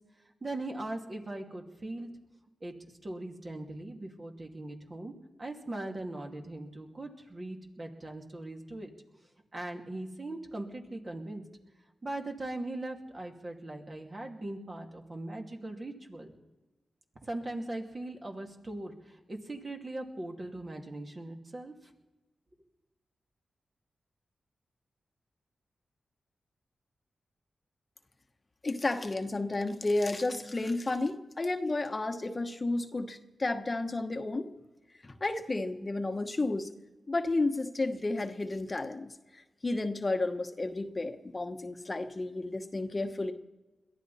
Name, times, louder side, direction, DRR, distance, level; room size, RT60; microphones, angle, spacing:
voice 1, 0.4-2.1 2.6-5.1 5.4-8.9 9.5-11.4 12.0-16.3 17.2-21.9, right 2 dB, 35° right, 1 dB, 2.6 m, -40 dB
voice 2, 28.6-34.5 35.0-36.7 37.1-43.3, left 2 dB, 35° left, 6 dB, 1.2 m, -32 dB
22.0 x 14.0 x 4.3 m, 1.1 s
cardioid pair, 65°, 0 cm